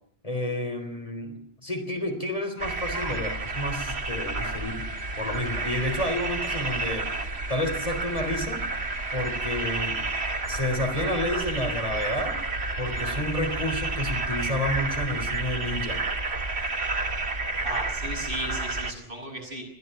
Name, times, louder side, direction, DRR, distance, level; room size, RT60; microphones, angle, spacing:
voice 1, 0.2-4.9 5.2-7.2 7.5-8.6 9.1-10.0 10.5-12.4 12.8-16.0, left 1 dB, 35° left, 6 dB, 3.6 m, -30 dB
sound 1, 2.6-18.9, right 3 dB, 90° right, 2.2 m, -30 dB
voice 2, 17.6-19.6, right 1 dB, 60° right, 1 dB, 7.7 m, -35 dB
21.5 x 15.5 x 9.0 m, 0.65 s
omnidirectional pair, 1.0 m